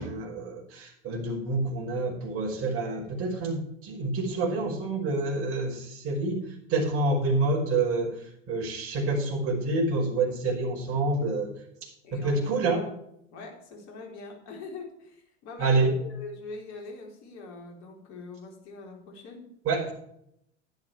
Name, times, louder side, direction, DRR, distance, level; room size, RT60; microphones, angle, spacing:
voice 1, 0.0-11.5 11.8-12.8 15.6-15.9 19.6-19.9, right 3 dB, 40° right, -1 dB, 5.4 m, -28 dB
voice 2, 12.0-12.9 13.3-19.5, left 3 dB, 50° left, 1 dB, 4.1 m, -43 dB
11.5 x 10.5 x 4.8 m, 0.73 s
figure-of-eight pair, 80°, 36 cm